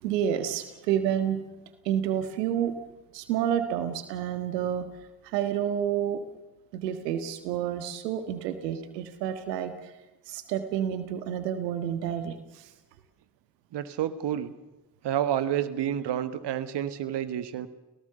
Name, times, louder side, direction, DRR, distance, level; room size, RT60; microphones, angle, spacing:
voice 1, 0.0-1.4 1.8-2.8 3.1-4.9 5.2-6.2 6.7-9.9 10.3-12.7, right 9 dB, 85° right, 10 dB, 1.7 m, -29 dB
voice 2, 13.7-14.5 15.0-17.7, right 10 dB, 60° right, 13 dB, 1.8 m, -29 dB
29.5 x 17.5 x 6.8 m, 1.1 s
hypercardioid pair, 50°, 48 cm